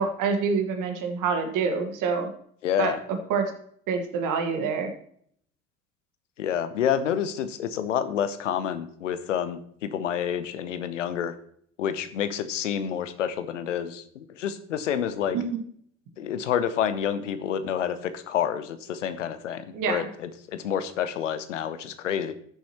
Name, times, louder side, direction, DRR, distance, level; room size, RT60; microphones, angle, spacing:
voice 1, 0.0-2.3 2.8-2.9 3.3-3.5 3.9-4.9 15.3-15.6 19.7-20.1, right 5 dB, 60° right, 5 dB, 1.7 m, -26 dB
voice 2, 2.6-3.0 6.4-11.3 11.8-15.4 16.2-22.3, left 9 dB, 85° left, 11 dB, 0.8 m, -28 dB
13.5 x 7.1 x 3.0 m, 0.64 s
hypercardioid pair, 55°, 36 cm